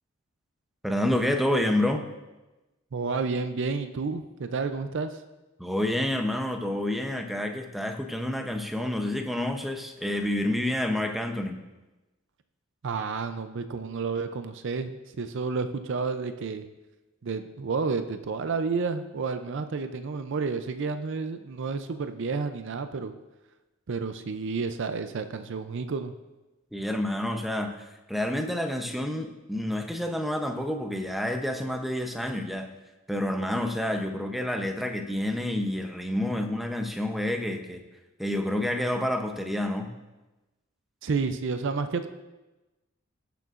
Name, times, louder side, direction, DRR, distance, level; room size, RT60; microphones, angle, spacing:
voice 1, 0.8-2.0 5.6-11.6 26.7-27.8 28.1-32.7 33.1-37.8 38.2-39.9, left 1 dB, ahead, 5 dB, 0.7 m, -28 dB
voice 2, 2.9-5.2 12.8-16.7 17.2-23.1 23.9-26.1 41.0-42.1, right 4 dB, 60° right, 9 dB, 0.5 m, -30 dB
18.0 x 6.7 x 2.5 m, 1.1 s
head